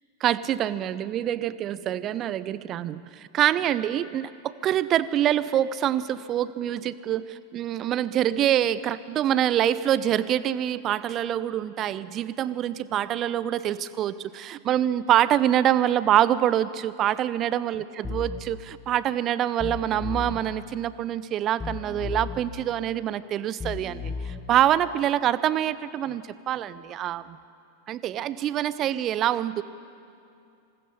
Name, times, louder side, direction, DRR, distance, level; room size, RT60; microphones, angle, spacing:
voice 1, 0.2-27.4 27.9-29.6, right 11 dB, 30° right, 17 dB, 0.7 m, -25 dB
sound 1, 18.0-18.4 19.6-20.4 21.6-22.4 23.6-24.4, left 4 dB, 15° left, 1.9 m, -34 dB
26.0 x 20.0 x 5.7 m, 2.6 s
figure-of-eight pair, 90°, 0 cm